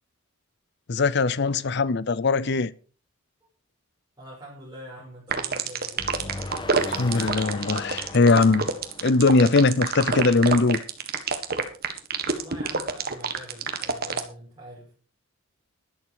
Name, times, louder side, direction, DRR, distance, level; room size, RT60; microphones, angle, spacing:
voice 1, 0.9-2.7 6.9-8.7 9.0-10.8, left 3 dB, 55° left, 0.6 m, -20 dB
voice 2, 4.2-6.2 12.3-14.9, equal, 20° right, 6.0 m, -44 dB
sound 1, 5.3-14.2, right 5 dB, 45° right, 1.7 m, -26 dB
sound 2, 6.0-10.0, left 2 dB, 25° left, 1.3 m, -38 dB
11.5 x 11.5 x 4.8 m
head